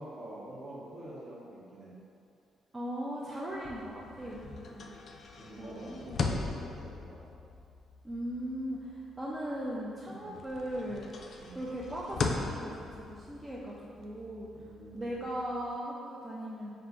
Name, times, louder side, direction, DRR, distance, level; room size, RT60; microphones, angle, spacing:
voice 1, 0.0-2.0 5.4-7.3 10.1-10.4 11.4-11.7 14.5-15.2, right 1 dB, 45° right, -5 dB, 1.0 m, -46 dB
voice 2, 2.7-4.9 5.6-6.2 8.0-11.1 11.5-14.5 14.9-16.7, equal, 20° right, -6 dB, 0.4 m, -38 dB
sound 1, 3.5-10.0 10.3-15.7, left 4 dB, 55° left, 0.3 m, -39 dB
4.3 x 2.5 x 3.6 m, 2.5 s
cardioid pair, 90°, 0 cm